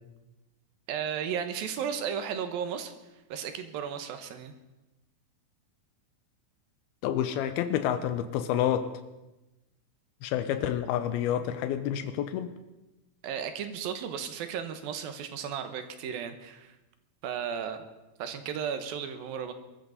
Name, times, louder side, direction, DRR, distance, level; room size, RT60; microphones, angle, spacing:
voice 1, 0.9-2.9 3.3-4.5 13.2-16.7 17.2-17.8 18.2-19.5, right 8 dB, 75° right, 8 dB, 2.9 m, -34 dB
voice 2, 7.0-8.9 10.2-12.5, left 10 dB, 90° left, 10 dB, 2.7 m, -29 dB
22.5 x 14.0 x 4.1 m, 1.0 s
omnidirectional pair, 4.3 m